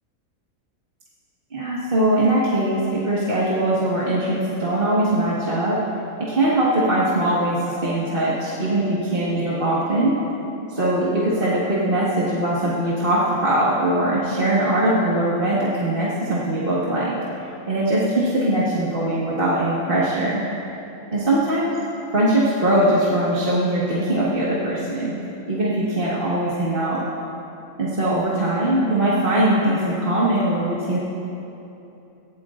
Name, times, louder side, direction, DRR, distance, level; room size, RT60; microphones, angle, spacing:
voice 1, 1.5-5.8 6.2-10.2 10.7-17.1 17.7-20.4 21.1-21.7 22.1-25.1 25.5-27.0 27.8-31.0, right 1 dB, 40° right, -8 dB, 1.8 m, -21 dB
19.0 x 16.0 x 2.5 m, 2.9 s
omnidirectional pair, 1.5 m